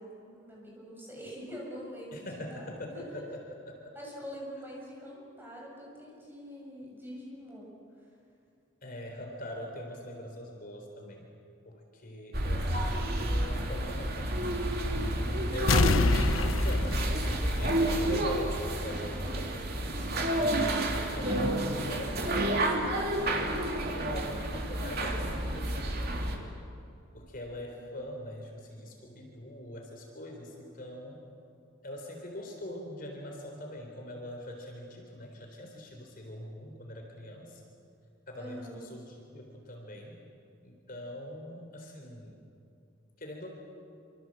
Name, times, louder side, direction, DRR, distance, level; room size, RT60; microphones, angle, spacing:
voice 1, 0.0-3.2 3.9-8.1 15.1-15.6 21.2-21.6 27.8-27.9 38.4-38.9, equal, 10° right, -3 dB, 7.2 m, -44 dB
voice 2, 2.1-3.4 3.7-4.0 8.8-11.3 11.6-14.2 15.5-20.6 21.0-26.5 27.1-31.3 31.8-37.6 38.3-40.2 40.6-42.4 43.2-43.5, left 1 dB, 45° left, 1 dB, 3.8 m, -43 dB
sound 1, 12.3-26.4, right 1 dB, 50° right, 3.2 m, -30 dB
sound 2, 15.7-18.3 18.6-18.7, left 3 dB, 80° left, 1.0 m, -26 dB
26.5 x 26.0 x 7.7 m, 2.6 s
head